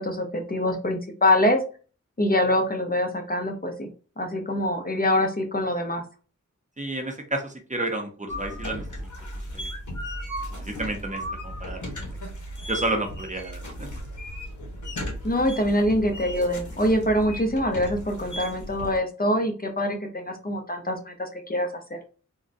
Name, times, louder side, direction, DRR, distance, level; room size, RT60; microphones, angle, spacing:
voice 1, 0.0-1.6 2.2-3.9 4.2-6.0 15.2-22.0, left 1 dB, 30° left, 3 dB, 0.6 m, -24 dB
voice 2, 6.8-8.8 9.5-9.7 10.5-12.1 12.7-13.9, right 2 dB, 25° right, 3 dB, 0.6 m, -31 dB
sound 1, 8.3-19.0, equal, 75° left, 0.9 m, -36 dB
3.7 x 2.1 x 2.5 m, 0.36 s
wide cardioid pair, 65°, 30 cm